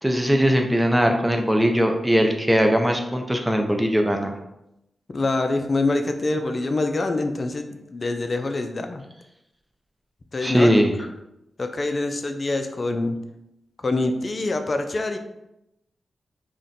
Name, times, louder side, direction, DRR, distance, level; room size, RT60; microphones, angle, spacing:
voice 1, 0.0-4.3 10.4-10.9, equal, 10° right, 3 dB, 0.5 m, -20 dB
voice 2, 5.1-9.0 10.3-10.9 11.6-13.2 13.8-15.2, left 2 dB, 50° left, 6 dB, 0.4 m, -25 dB
2.4 x 2.2 x 3.9 m, 0.87 s
supercardioid pair, 40°, 0 cm